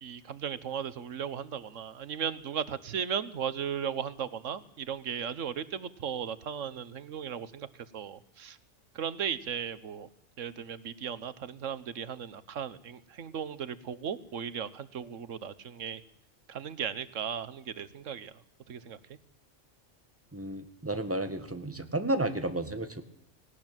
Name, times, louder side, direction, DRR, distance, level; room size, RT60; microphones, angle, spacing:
voice 1, 0.0-7.7 7.9-8.6 8.9-10.1 10.4-16.0 16.5-18.3 18.7-19.0, right 8 dB, 90° right, 15 dB, 1.4 m, -36 dB
voice 2, 20.3-23.0, right 2 dB, 10° right, 8 dB, 1.7 m, -32 dB
18.5 x 18.0 x 9.0 m, 0.70 s
omnidirectional pair, 1.3 m